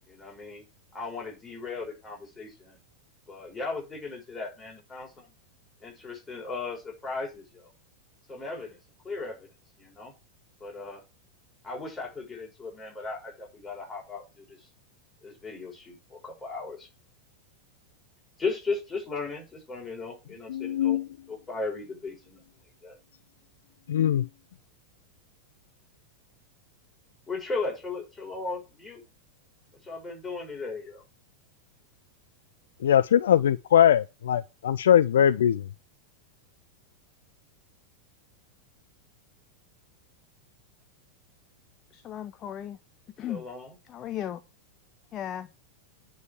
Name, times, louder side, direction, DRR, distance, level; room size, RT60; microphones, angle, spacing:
voice 1, 0.1-0.6 0.9-2.8 3.3-5.3 5.8-7.7 8.3-8.8 9.0-9.5 9.8-10.1 10.6-11.0 11.6-14.6 15.2-16.9 18.4-21.0 21.3-22.4 22.8-23.0 27.3-29.0 29.8-31.0 43.3-43.7, left 3 dB, 10° left, 5.7 m, -36 dB
voice 2, 20.5-21.1 23.9-24.3 32.8-35.6, left 10 dB, 60° left, 0.4 m, -21 dB
voice 3, 41.9-42.8 43.2-43.5 43.8-44.4 45.1-45.5, left 11 dB, 30° left, 0.7 m, -36 dB
9.6 x 4.7 x 7.0 m
figure-of-eight pair, 90°, 0 cm